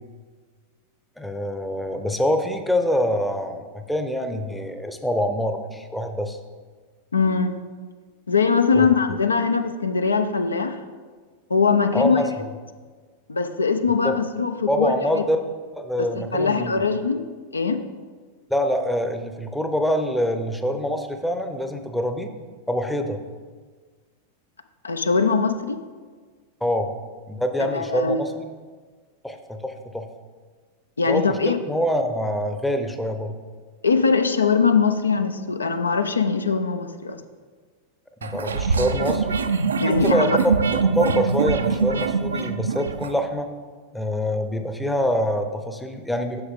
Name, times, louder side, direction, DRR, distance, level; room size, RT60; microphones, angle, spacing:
voice 1, 1.2-6.4 8.7-8.9 11.9-12.3 14.0-14.1 14.7-15.4 15.7-16.8 18.5-22.3 22.7-23.2 26.6-27.0 27.3-28.3 29.2-30.1 31.1-33.3 38.2-39.3 39.8-43.5 43.9-46.4, equal, 5° left, 6 dB, 0.6 m, -25 dB
voice 2, 7.1-7.6 8.3-10.8 11.5-12.2 13.3-15.2 16.0-17.2 17.5-17.8 24.8-25.8 27.7-28.2 31.0-31.6 33.8-37.2 39.8-40.3, left 5 dB, 75° left, 8 dB, 0.4 m, -21 dB
sound 1, 38.2-43.1, right 5 dB, 70° right, 0.4 m, -23 dB
7.8 x 6.2 x 3.6 m, 1.5 s
figure-of-eight pair, 90°, 0 cm